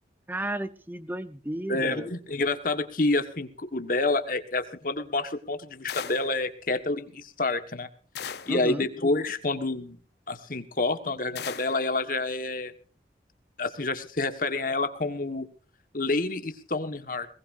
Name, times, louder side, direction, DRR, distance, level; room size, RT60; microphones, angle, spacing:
voice 1, 0.3-2.1 8.5-8.8, right 1 dB, 10° right, 11 dB, 0.9 m, -33 dB
voice 2, 1.7-7.9 8.5-10.0 10.3-12.7 13.6-15.5 15.9-17.3, left 2 dB, 50° left, 8 dB, 1.5 m, -28 dB
sound 1, 5.9-6.4 8.1-8.7 11.3-11.9, left 7 dB, 65° left, 0.8 m, -38 dB
21.0 x 19.0 x 2.6 m, 0.38 s
head